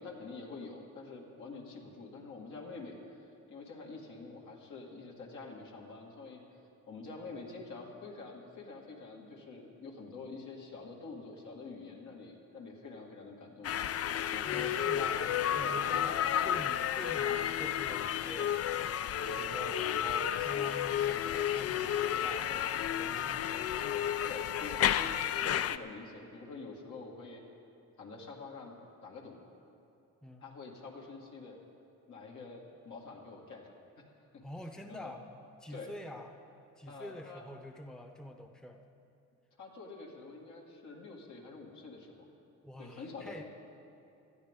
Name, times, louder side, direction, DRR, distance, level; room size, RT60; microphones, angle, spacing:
voice 1, 0.0-6.4 6.9-14.0 14.3-15.2 15.6-15.8 16.1-16.2 19.3-19.5 24.2-27.4 28.0-29.4 30.4-31.6 32.1-33.7 34.3-34.4 34.9-35.1 35.7-35.9 36.9-37.4 39.6-42.3 42.8-43.4, left 3 dB, 75° left, -1 dB, 2.2 m, -47 dB
sound 1, 13.6-25.8, left 10 dB, 50° left, 0.5 m, -32 dB
voice 2, 14.5-15.2 15.5-18.7 19.1-23.7 30.2-30.5 34.4-35.2 35.6-36.4 36.7-38.8 42.6-43.4, left 1 dB, ahead, 4 dB, 0.8 m, -47 dB
19.0 x 12.5 x 3.7 m, 2.7 s
cardioid pair, 90°, 30 cm